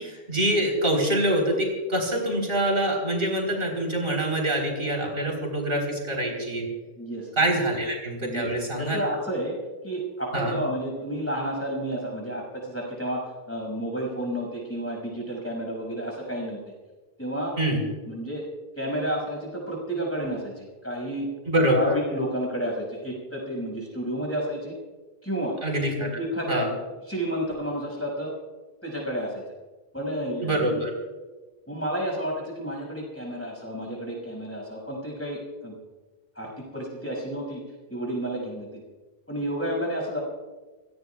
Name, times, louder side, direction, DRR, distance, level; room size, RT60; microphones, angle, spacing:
voice 1, 0.0-6.7 7.4-9.0 10.3-10.6 17.6-17.8 21.5-21.9 25.6-26.1 26.5-26.7 30.4-30.9, right 1 dB, 65° right, 0 dB, 4.3 m, -25 dB
voice 2, 7.0-7.3 8.2-9.5 9.8-16.6 17.2-17.6 18.1-18.4 18.8-21.3 21.7-24.7 25.2-25.6 26.2-26.6 27.1-28.3 28.8-29.4 29.9-30.6 31.7-35.7 36.4-37.6 37.9-38.7 39.3-40.2, right 1 dB, 15° left, -1 dB, 6.2 m, -31 dB
28.0 x 17.5 x 2.4 m, 1.3 s
omnidirectional pair, 1.0 m